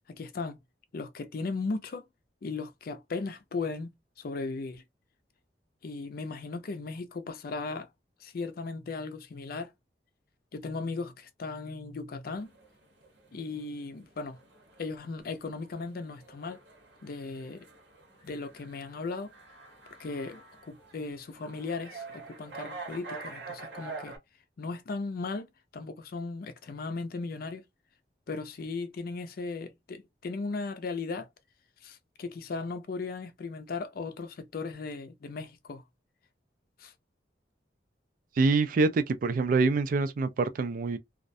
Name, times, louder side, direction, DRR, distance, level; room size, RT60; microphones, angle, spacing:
voice 1, 0.1-0.6 0.9-2.0 2.4-3.9 4.2-4.8 5.8-7.9 8.2-9.7 10.5-12.5 13.3-14.4 14.8-16.6 17.0-17.7 18.2-19.3 20.0-24.1 24.6-25.5 25.7-27.6 28.3-31.3 31.8-35.8 36.8-36.9, left 3 dB, 55° left, 0.4 m, -37 dB
sound 1, 12.4-24.2, right 4 dB, 80° right, 1.0 m, -46 dB
voice 2, 38.4-41.0, right 3 dB, 50° right, 0.3 m, -25 dB
2.3 x 2.1 x 2.6 m
head